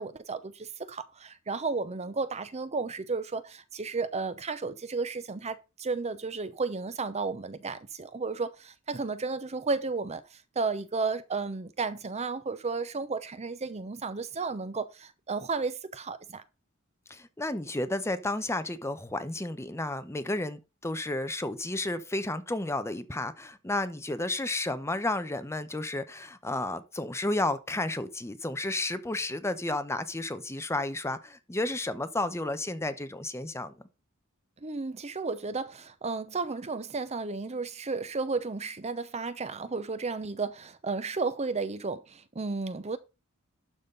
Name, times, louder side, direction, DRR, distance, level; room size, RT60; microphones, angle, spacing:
voice 1, 0.0-10.2 10.6-16.4 34.6-43.0, right 4 dB, 30° right, 0.7 m, -33 dB
voice 2, 17.1-33.7, left 2 dB, 15° left, 0.8 m, -32 dB
12.0 x 4.1 x 5.3 m
head